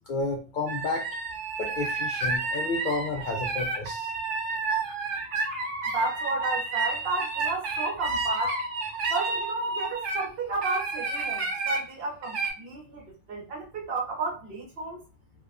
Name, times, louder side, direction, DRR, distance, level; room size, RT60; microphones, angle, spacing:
voice 1, 0.1-1.0 1.6-4.1, left 3 dB, 60° left, 0.5 m, -31 dB
sound 1, 0.7-10.3 10.6-11.8 12.2-12.5, right 3 dB, 75° right, 1.0 m, -30 dB
voice 2, 5.9-8.6 9.1-15.0, right 3 dB, 55° right, 1.0 m, -32 dB
2.6 x 2.2 x 2.4 m
omnidirectional pair, 1.2 m